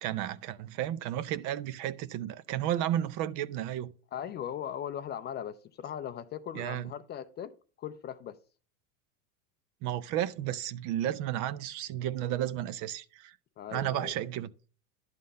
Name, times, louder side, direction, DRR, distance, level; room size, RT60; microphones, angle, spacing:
voice 1, 0.0-3.9 6.5-6.9 9.8-13.3 13.7-14.5, right 12 dB, 45° right, 0.6 m, -33 dB
voice 2, 4.1-8.4 13.6-14.1, left 9 dB, 25° left, 0.4 m, -39 dB
11.0 x 3.8 x 6.4 m
supercardioid pair, 115°, 41 cm